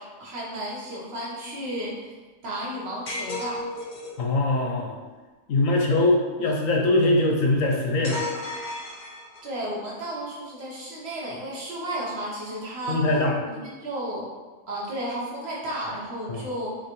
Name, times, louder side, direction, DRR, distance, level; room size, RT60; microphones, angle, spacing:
voice 1, 0.0-2.2 2.4-3.6 9.4-13.1 13.5-14.3 14.7-16.8, right 1 dB, 45° right, -4 dB, 1.2 m, -33 dB
sound 1, 3.1-4.2 8.0-9.6, left 2 dB, 45° left, 0.6 m, -34 dB
voice 2, 4.2-4.9 5.5-8.2 12.9-13.3 16.3-16.4, left 2 dB, 60° left, 0 dB, 1.0 m, -22 dB
5.5 x 3.1 x 3.0 m, 1.3 s
omnidirectional pair, 1.7 m